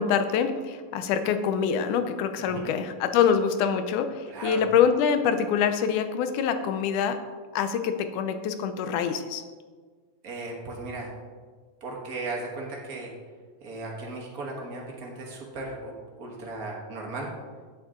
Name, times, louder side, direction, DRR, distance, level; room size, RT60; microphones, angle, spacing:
voice 1, 0.0-7.2 7.5-9.4, left 7 dB, 80° left, 9 dB, 2.1 m, -25 dB
voice 2, 4.3-4.6 10.2-11.1 11.8-13.1 13.6-17.3, right 2 dB, 50° right, -1 dB, 1.1 m, -36 dB
9.4 x 9.0 x 3.7 m, 1.5 s
omnidirectional pair, 3.7 m